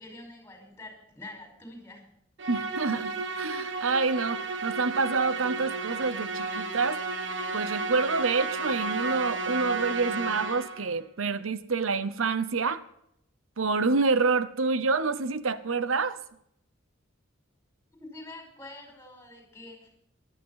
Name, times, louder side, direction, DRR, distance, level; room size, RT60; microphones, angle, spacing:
voice 1, 0.0-2.0 18.0-19.9, left 2 dB, 10° left, 3 dB, 5.0 m, -46 dB
Musical instrument, 2.4-10.9, right 3 dB, 60° right, 1.3 m, -32 dB
voice 2, 2.5-7.0 7.5-12.8 13.6-16.2, right 4 dB, 85° right, 14 dB, 0.9 m, -27 dB
16.0 x 12.5 x 5.7 m, 0.73 s
head